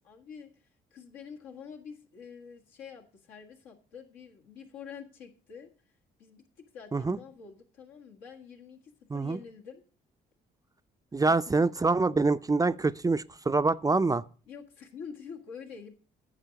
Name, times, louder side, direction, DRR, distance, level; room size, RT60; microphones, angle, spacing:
voice 1, 0.0-5.7 6.2-9.8 11.2-11.9 14.5-15.9, left 6 dB, 85° left, 1.6 m, -47 dB
voice 2, 11.1-14.2, right 3 dB, 20° right, 0.4 m, -25 dB
9.9 x 7.3 x 5.2 m
hypercardioid pair, 55°, 20 cm